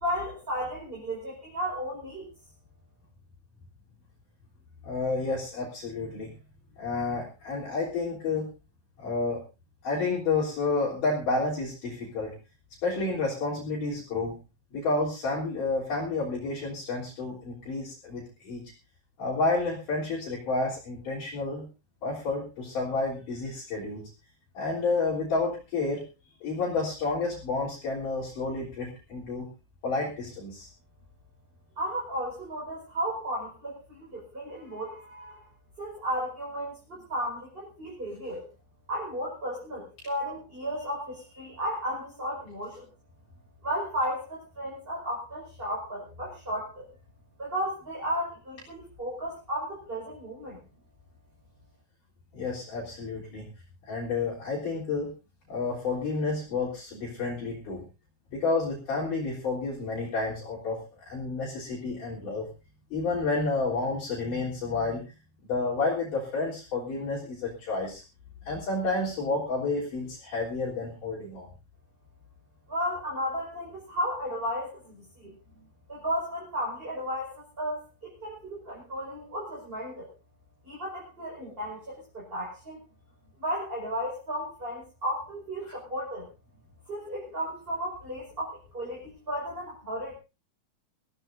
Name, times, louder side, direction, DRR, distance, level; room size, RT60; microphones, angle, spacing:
voice 1, 0.0-2.3 31.8-35.4 35.8-38.4 38.9-42.9 43.6-46.9 47.4-50.6 72.7-80.1 80.6-82.8 83.4-86.3 86.9-90.1, equal, 15° right, -3 dB, 5.2 m, -34 dB
voice 2, 4.8-6.3 6.8-8.5 9.0-9.4 9.8-12.3 12.8-14.4 14.7-18.7 19.2-21.7 22.0-24.0 24.5-26.0 26.4-29.5 29.8-30.7 52.3-53.5 53.8-55.1 55.5-57.8 58.3-62.5 62.9-65.1 65.5-68.0 68.4-71.5 81.4-81.6, left 3 dB, 50° left, -6 dB, 5.0 m, -30 dB
24.0 x 16.0 x 2.7 m, 0.31 s
omnidirectional pair, 4.7 m